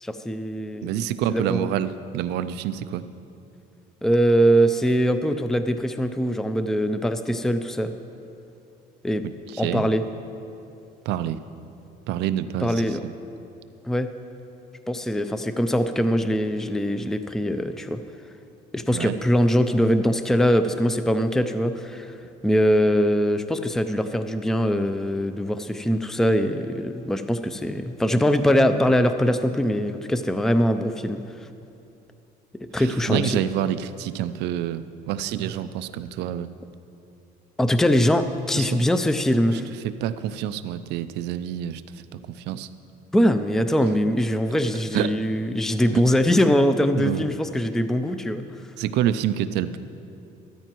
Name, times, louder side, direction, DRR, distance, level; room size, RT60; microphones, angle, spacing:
voice 1, 0.0-0.9 1.3-1.7 4.0-7.9 9.0-9.3 9.6-10.0 12.6-13.0 13.8-14.1 14.9-18.0 18.7-22.2 22.4-31.5 32.7-33.4 37.6-39.7 43.1-48.5, equal, 5° left, 9 dB, 0.4 m, -22 dB
voice 2, 0.8-3.0 9.5-9.9 11.1-11.4 12.1-13.1 18.9-19.1 32.7-36.5 38.6-38.7 39.5-41.8 42.1-42.7 44.9-45.1 45.9-46.0 47.0-47.3 48.8-49.8, right 11 dB, 85° right, 13 dB, 0.5 m, -27 dB
13.5 x 13.0 x 3.0 m, 2.7 s
cardioid pair, 110°, 17 cm